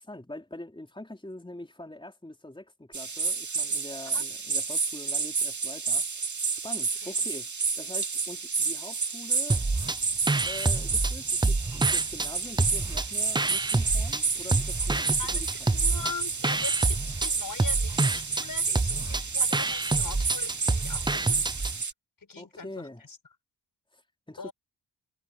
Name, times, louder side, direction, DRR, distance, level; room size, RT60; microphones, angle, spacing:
voice 1, 0.0-6.3 6.6-7.5 7.7-9.6 10.4-15.7 22.4-23.0 23.9-24.0 24.3-24.5, left 1 dB, 10° left, 4.5 m, -44 dB
sound 1, 2.9-21.9, right 5 dB, 40° right, 2.5 m, -30 dB
sound 2, 9.5-10.0 10.3-12.3 12.6-14.2 14.5-21.8, right 2 dB, 10° right, 0.5 m, -28 dB
voice 2, 15.7-21.5 22.2-23.2 24.4-24.5, left 5 dB, 45° left, 6.7 m, -41 dB
cardioid pair, 65°, 44 cm